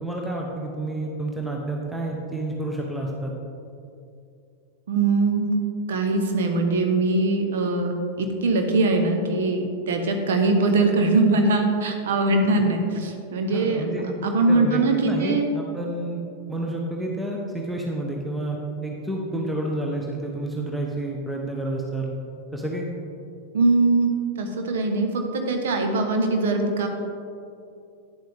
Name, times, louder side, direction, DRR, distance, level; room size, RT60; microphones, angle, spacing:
voice 1, 0.0-3.3 13.5-14.0 14.5-16.2 16.5-22.1 22.5-22.9, right 1 dB, 5° right, -1 dB, 0.9 m, -29 dB
voice 2, 4.9-5.5 5.9-15.5 23.5-24.1 24.4-26.9, right 3 dB, 60° right, 4 dB, 1.0 m, -22 dB
10.0 x 7.7 x 3.5 m, 2.5 s
figure-of-eight pair, 90°, 0 cm